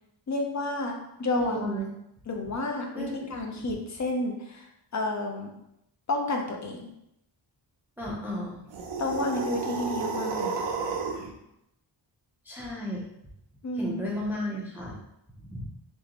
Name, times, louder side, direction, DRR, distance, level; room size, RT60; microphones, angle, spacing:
voice 1, 0.3-1.8 2.3-4.6 4.9-5.5 6.1-6.9 9.0-10.7 13.6-14.0, left 2 dB, 40° left, 2 dB, 0.6 m, -30 dB
voice 2, 1.4-1.9 2.9-3.3 3.5-3.7 8.0-8.6 12.5-13.0 13.8-14.9 15.5-15.7, equal, 5° right, -4 dB, 0.5 m, -33 dB
sound 1, 8.7-11.3, right 4 dB, 70° right, 0.7 m, -31 dB
3.7 x 3.0 x 2.9 m, 0.82 s
wide cardioid pair, 125°, 45 cm